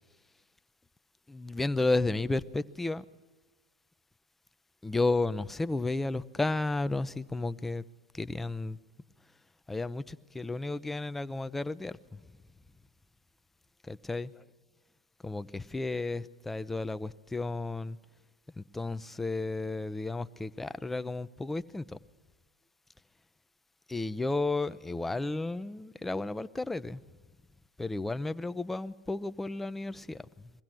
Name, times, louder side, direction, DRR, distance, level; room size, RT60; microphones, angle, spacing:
voice 1, 1.3-3.0 4.8-7.8 8.1-8.8 9.7-12.2 13.8-14.3 15.2-18.0 18.6-22.0 23.9-27.0 27.8-30.5, left 2 dB, 10° left, 0.6 m, -33 dB
22.0 x 15.5 x 7.6 m
hypercardioid pair, 100°, 2 cm